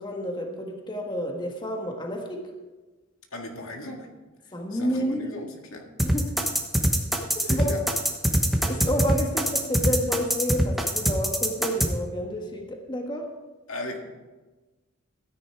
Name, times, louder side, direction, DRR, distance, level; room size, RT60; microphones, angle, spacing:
voice 1, 0.0-2.5 4.5-5.4 6.0-6.3 7.5-7.8 8.7-13.3, equal, 20° left, 2 dB, 1.4 m, -30 dB
voice 2, 3.3-4.1 4.8-5.8 7.4-7.8 13.7-14.0, left 1 dB, 85° left, 2 dB, 1.9 m, -36 dB
sound 1, 6.0-11.9, equal, ahead, 1.1 m, -23 dB
13.5 x 9.8 x 4.6 m, 1.2 s
head